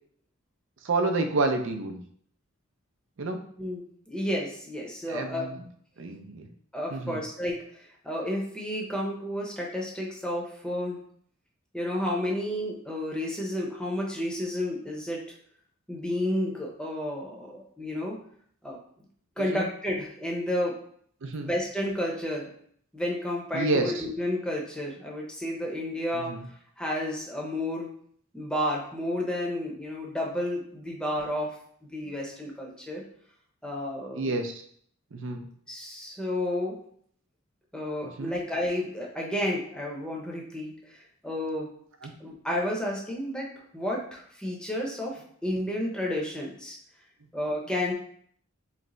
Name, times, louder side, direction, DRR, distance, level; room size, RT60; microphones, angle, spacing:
voice 1, 0.8-2.0 3.2-3.4 5.1-5.6 6.0-6.5 6.9-7.2 19.4-19.6 21.2-21.5 23.5-24.0 26.1-26.5 34.1-34.5 35.1-35.5 38.2-38.3 42.0-42.1, right 2 dB, 65° right, 6 dB, 0.5 m, -29 dB
voice 2, 3.6-5.4 6.7-11.0 11.7-15.2 15.9-18.2 18.6-18.8 19.4-20.8 21.4-22.5 22.9-26.3 26.8-27.9 28.3-31.5 31.9-33.0 33.6-34.3 35.7-36.8 37.7-41.7 42.2-46.8 47.3-47.9, left 1 dB, 5° left, -2 dB, 0.8 m, -31 dB
3.2 x 3.2 x 3.8 m, 0.62 s
head